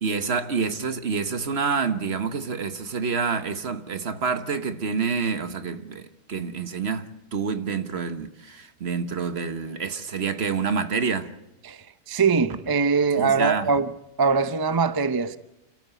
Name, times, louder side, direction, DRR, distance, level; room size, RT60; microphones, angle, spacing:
voice 1, 0.0-11.3 13.2-13.7, right 5 dB, 45° right, 1.3 m, -28 dB
voice 2, 11.6-15.4, right 5 dB, 30° right, 0.4 m, -22 dB
28.5 x 14.0 x 8.1 m
omnidirectional pair, 1.6 m